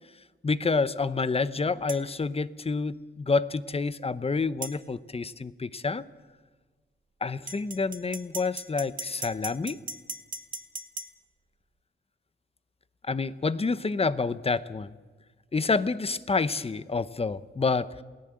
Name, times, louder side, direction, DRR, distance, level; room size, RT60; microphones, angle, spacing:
voice 1, 0.4-6.0 7.2-9.8 13.1-14.9 15.5-18.0, left 4 dB, 30° left, 15 dB, 0.8 m, -28 dB
sound 1, 1.9-2.0 4.6-4.8 7.5-11.1, right 3 dB, 40° right, 1.2 m, -38 dB
28.5 x 18.5 x 7.7 m, 1.4 s
wide cardioid pair, 130°, 21 cm